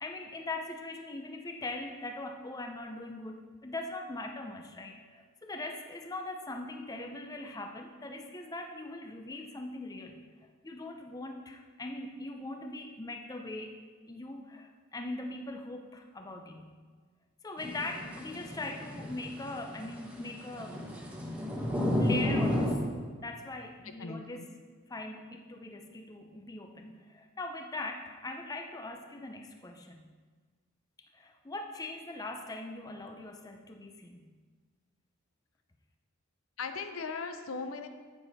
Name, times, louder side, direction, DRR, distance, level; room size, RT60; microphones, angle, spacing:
voice 1, 0.0-10.2 10.6-13.8 14.1-16.7 17.4-20.8 22.0-22.8 23.2-24.5 24.9-30.0 31.1-34.3, left 2 dB, 15° left, 4 dB, 0.5 m, -41 dB
sound 1, 17.6-22.7, left 1 dB, 5° right, 1.1 m, -32 dB
voice 2, 23.8-24.5 36.6-37.9, left 4 dB, 75° left, 8 dB, 0.7 m, -38 dB
9.1 x 7.5 x 4.1 m, 1.5 s
head